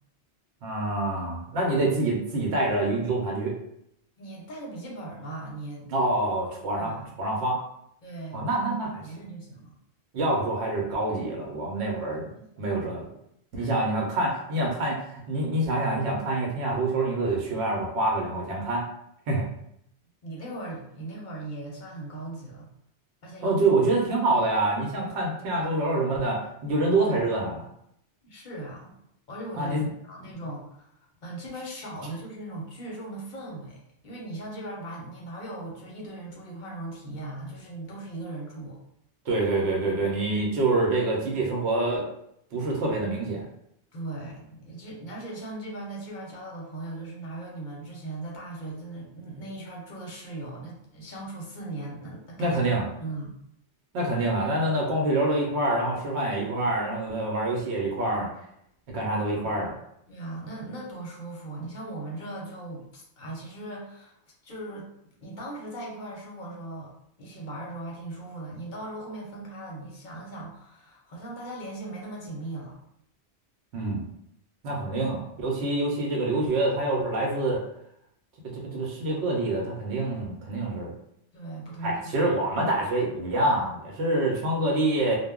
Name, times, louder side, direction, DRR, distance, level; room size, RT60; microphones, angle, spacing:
voice 1, 0.6-3.6 5.9-7.6 8.3-9.0 10.1-12.3 12.6-13.0 13.5-18.9 19.3-19.4 23.4-27.7 29.5-29.9 39.3-42.0 42.5-43.4 52.4-52.8 53.9-58.3 58.9-59.8 73.7-74.1 74.6-77.6 78.5-80.9 81.8-85.2, right 2 dB, 75° right, -1 dB, 0.9 m, -26 dB
voice 2, 4.2-5.9 6.8-7.2 8.0-9.7 12.1-12.5 13.6-13.7 20.2-22.7 23.2-23.6 28.2-29.0 29.3-30.9 31.2-38.8 43.9-52.6 53.0-53.4 60.1-64.2 64.4-64.9 65.2-66.9 67.2-72.8 81.3-82.3, right 2 dB, 50° left, -3 dB, 0.7 m, -39 dB
2.2 x 2.0 x 3.5 m, 0.75 s
omnidirectional pair, 1.2 m